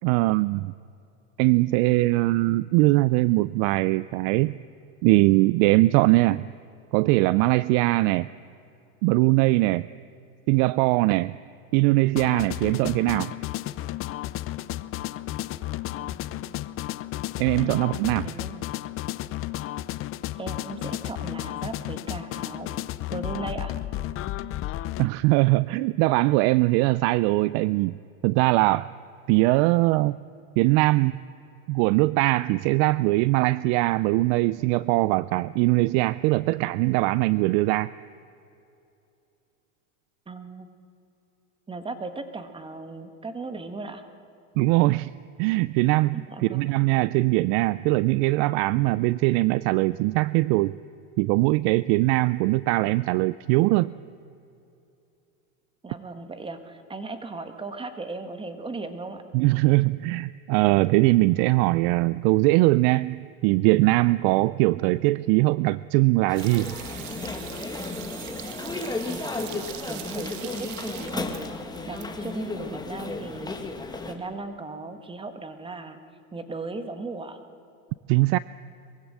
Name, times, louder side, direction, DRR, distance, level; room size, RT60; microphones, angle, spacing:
voice 1, 0.0-0.7 1.4-4.6 5.0-6.5 6.9-8.3 9.0-9.9 10.5-11.4 11.7-13.3 17.4-18.3 25.0-28.0 28.2-28.9 29.3-30.2 30.6-31.2 31.7-37.9 44.6-45.1 45.4-46.2 46.4-50.8 51.2-53.9 59.3-66.8 78.1-78.4, right 20 dB, 55° right, 18 dB, 0.4 m, -21 dB
sound 1, 12.2-25.1, left 14 dB, 35° left, 0.6 m, -33 dB
voice 2, 16.0-16.5 17.6-17.8 18.2-18.8 20.4-22.7 23.1-23.7 40.3-40.7 41.7-44.0 46.3-46.9 55.8-59.2 69.0-71.3 71.9-73.6 74.1-76.0 76.3-77.4, right 3 dB, 15° right, 8 dB, 1.6 m, -37 dB
sound 2, 66.3-74.1, left 3 dB, 10° left, 1.7 m, -34 dB
sound 3, 66.3-72.1 72.3-72.4, right 12 dB, 75° right, 1.7 m, -41 dB
22.5 x 15.5 x 7.6 m, 2.7 s
supercardioid pair, 125°, 39 cm